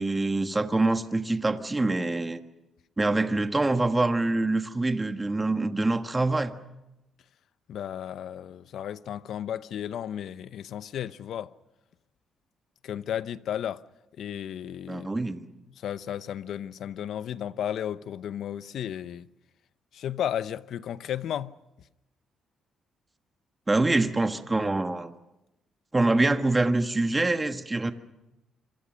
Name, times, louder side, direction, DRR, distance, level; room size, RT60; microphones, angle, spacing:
voice 1, 0.0-2.4 3.0-6.5 14.9-15.5 23.7-25.1 25.9-27.9, right 2 dB, 20° right, 1.5 m, -25 dB
voice 2, 7.7-11.5 12.8-13.8 14.2-15.1 15.8-19.3 19.9-21.6, left 10 dB, 70° left, 0.8 m, -34 dB
26.5 x 24.5 x 6.4 m
cardioid pair, 90°, 0 cm